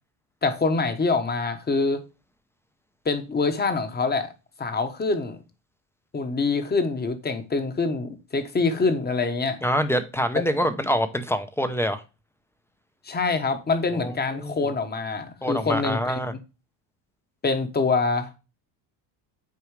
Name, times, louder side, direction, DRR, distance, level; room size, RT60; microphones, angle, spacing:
voice 1, 0.4-2.0 3.0-4.3 4.6-5.4 6.1-9.6 10.5-10.6 13.0-16.4 17.4-18.3, left 4 dB, 20° left, 1.1 m, -25 dB
voice 2, 9.6-12.0 13.9-14.6 15.4-16.3, equal, 5° left, 0.7 m, -26 dB
8.4 x 4.7 x 3.1 m
cardioid pair, 125°, 46 cm